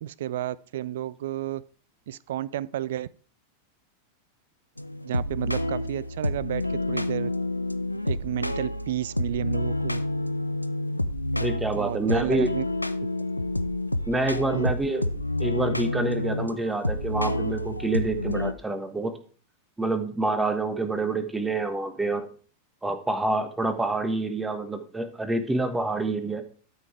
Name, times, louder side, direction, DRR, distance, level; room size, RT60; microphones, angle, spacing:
voice 1, 0.0-1.6 2.1-3.1 5.0-7.3 8.0-10.0 11.7-12.7 14.5-14.7, right 12 dB, 55° right, 21 dB, 0.3 m, -31 dB
sound 1, 4.8-18.5, left 1 dB, 85° left, 0.5 m, -29 dB
voice 2, 11.4-12.5 14.1-15.0 15.4-19.2 19.8-22.3 22.8-26.4, right 2 dB, 10° right, 9 dB, 1.3 m, -27 dB
12.0 x 5.6 x 4.7 m, 0.43 s
figure-of-eight pair, 90°, 0 cm